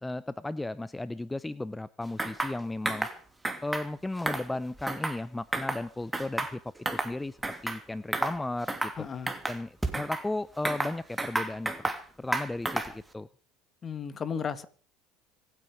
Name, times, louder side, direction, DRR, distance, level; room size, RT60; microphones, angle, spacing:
voice 1, 0.0-3.1 3.6-7.4 7.6-8.9 9.5-11.7 12.2-13.3, left 2 dB, 10° left, 18 dB, 0.6 m, -35 dB
sound 1, 2.2-2.6 2.9-3.2 3.4-3.9 4.2-5.2 5.5-5.8 6.1-7.1 7.4-7.8 8.1-8.4 8.7-9.0 9.3-10.2 10.7-12.0 12.3-13.0, right 2 dB, 10° right, 2.8 m, -31 dB
voice 2, 9.0-9.3 13.8-14.7, left 6 dB, 35° left, 14 dB, 1.9 m, -34 dB
25.5 x 9.6 x 5.1 m, 0.42 s
hypercardioid pair, 85°, 0 cm